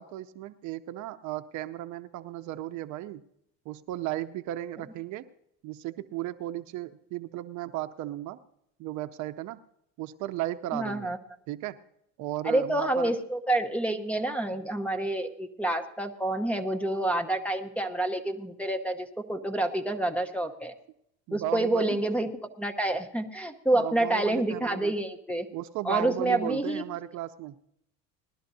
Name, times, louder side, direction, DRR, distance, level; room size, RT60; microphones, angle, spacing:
voice 1, 0.0-3.2 3.7-5.2 5.6-8.4 8.8-9.6 10.0-11.1 11.5-11.8 12.2-13.1 21.3-22.0 23.7-24.9 25.5-27.5, right 13 dB, 55° right, 11 dB, 0.7 m, -35 dB
voice 2, 10.7-11.2 12.4-20.7 21.3-25.5 25.8-26.8, right 1 dB, 5° left, 6 dB, 0.9 m, -28 dB
19.5 x 12.5 x 2.7 m, 0.76 s
cardioid pair, 125°, 34 cm